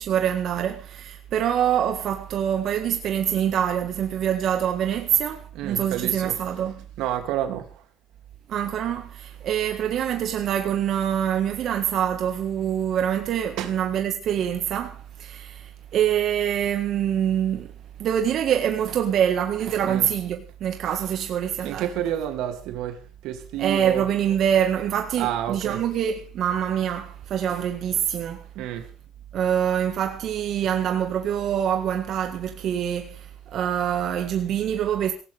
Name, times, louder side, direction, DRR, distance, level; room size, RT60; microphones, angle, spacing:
voice 1, 0.0-6.8 8.5-17.7 18.0-21.9 23.6-28.4 29.3-35.1, right 9 dB, 55° right, 1.8 m, -25 dB
voice 2, 5.5-6.6 7.0-7.8 13.6-13.7 19.8-20.1 20.9-21.1 21.6-24.1 25.2-25.8 28.5-28.8, right 11 dB, 75° right, 2.8 m, -30 dB
18.0 x 17.0 x 3.6 m
cardioid pair, 110°, 0 cm